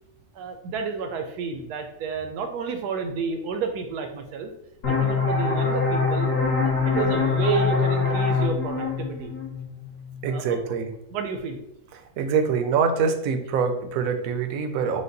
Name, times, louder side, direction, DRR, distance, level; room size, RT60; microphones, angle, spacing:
voice 1, 0.3-4.5 4.9-6.3 6.6-9.3 10.2-10.6 11.1-11.6, right 5 dB, 85° right, 6 dB, 1.2 m, -30 dB
sound 1, 4.8-10.2, left 4 dB, 55° left, 1.5 m, -24 dB
voice 2, 10.2-10.9 12.2-15.0, right 6 dB, 70° right, 7 dB, 0.9 m, -24 dB
5.1 x 2.2 x 3.9 m, 0.80 s
omnidirectional pair, 1.6 m